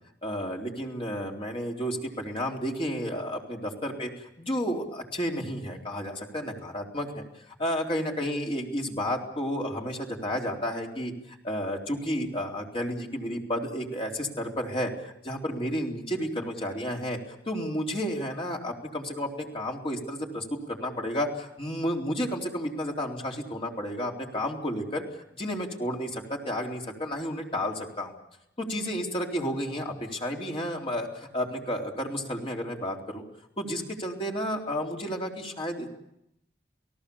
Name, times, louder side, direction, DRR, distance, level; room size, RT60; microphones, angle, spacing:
voice 1, 0.2-14.9 15.2-17.2 17.5-25.0 25.3-28.1 28.6-33.2 33.6-35.9, equal, 30° left, 0 dB, 3.8 m, -32 dB
29.5 x 18.0 x 7.1 m, 0.79 s
head